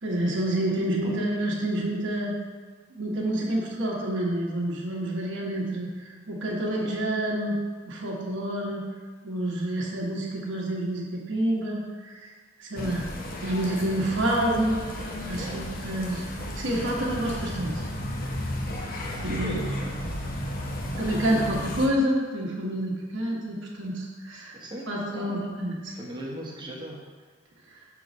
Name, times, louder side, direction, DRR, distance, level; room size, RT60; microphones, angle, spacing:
voice 1, 0.0-2.4 2.9-7.5 7.8-8.8 9.2-12.3 12.6-13.1 13.4-14.8 15.3-16.3 16.6-17.8 19.2-19.6 21.0-24.6 24.9-25.9, right 1 dB, 65° right, -4 dB, 1.2 m, -28 dB
sound 1, 12.8-21.9, left 1 dB, 50° left, 0.8 m, -33 dB
voice 2, 15.1-15.6 19.1-19.9 24.5-25.5 25.9-27.0, right 1 dB, 25° right, -2 dB, 0.9 m, -39 dB
6.0 x 3.9 x 5.2 m, 1.5 s
head